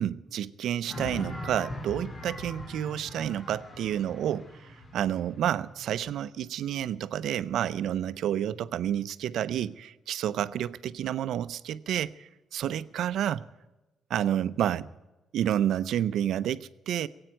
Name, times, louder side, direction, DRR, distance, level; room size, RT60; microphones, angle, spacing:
voice 1, 0.0-13.4 14.1-14.9 15.3-17.1, right 10 dB, 75° right, 0.6 m, -30 dB
sound 1, 0.9-6.1, left 1 dB, 35° left, 2.5 m, -41 dB
17.0 x 8.8 x 9.1 m
cardioid pair, 90°, 0 cm